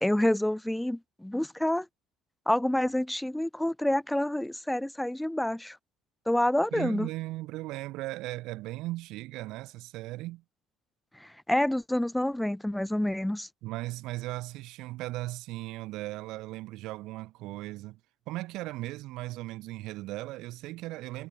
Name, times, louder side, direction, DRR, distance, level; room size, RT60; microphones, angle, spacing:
voice 1, 0.0-1.8 2.5-5.8 6.3-7.1 11.2-13.5, left 1 dB, 5° left, 1.3 m, -28 dB
voice 2, 6.7-10.4 13.6-18.0 18.3-21.3, right 18 dB, 55° right, 1.7 m, -37 dB
figure-of-eight pair, 60°, 0 cm